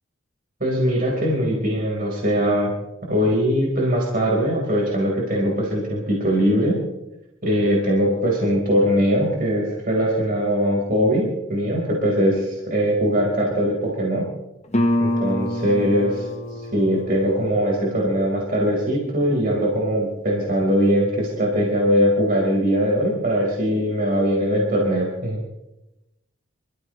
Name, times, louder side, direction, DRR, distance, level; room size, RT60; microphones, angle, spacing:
voice 1, 0.6-2.7 3.1-6.8 7.4-14.3 15.0-16.1 16.7-25.4, equal, 40° right, -3 dB, 4.6 m, -21 dB
Guitar, 14.7-20.1, left 1 dB, 30° left, 1.4 m, -28 dB
28.0 x 15.0 x 3.3 m, 0.93 s
head